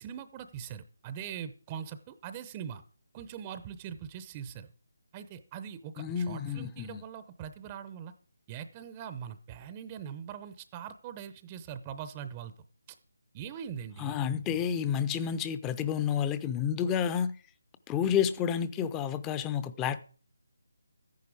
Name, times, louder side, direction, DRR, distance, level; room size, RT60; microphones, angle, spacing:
voice 1, 0.0-2.8 3.1-4.7 5.1-8.1 8.5-12.5 12.9-13.0 13.3-14.2, right 8 dB, 20° right, 0.7 m, -42 dB
voice 2, 6.0-7.0 14.0-17.3 17.9-20.0, left 8 dB, 15° left, 0.7 m, -30 dB
13.5 x 10.5 x 4.9 m
figure-of-eight pair, 160°, 0 cm